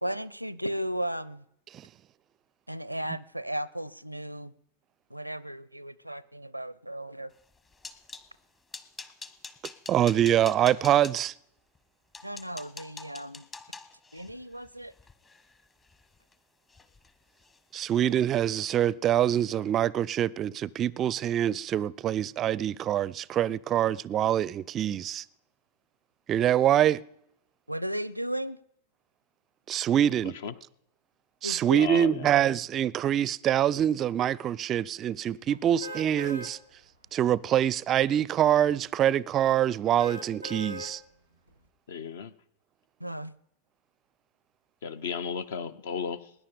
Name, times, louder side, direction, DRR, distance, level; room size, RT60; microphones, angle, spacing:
voice 1, 0.0-1.4 2.7-4.5 5.1-7.3 12.2-13.4 14.1-14.9 27.7-28.6 31.4-31.9 43.0-43.3, equal, 90° right, 0.5 m, -35 dB
sound 1, 7.4-8.3 8.7-11.2 11.8-11.9 12.1-16.3 16.7-17.1 17.4-17.6 18.0-18.2, left 4 dB, 20° left, 1.1 m, -46 dB
voice 2, 9.9-11.3 17.7-25.2 26.3-27.0 29.7-30.4 31.4-36.6 37.1-41.0, right 11 dB, 30° right, 0.4 m, -25 dB
voice 3, 30.2-30.5 31.8-32.3 41.9-42.3 44.8-46.3, left 7 dB, 60° left, 0.8 m, -34 dB
sound 2, 35.8-36.5 37.1-37.2 40.0-40.9 41.5-41.6, equal, 90° left, 1.7 m, -39 dB
20.0 x 10.0 x 5.1 m
figure-of-eight pair, 90°, 0 cm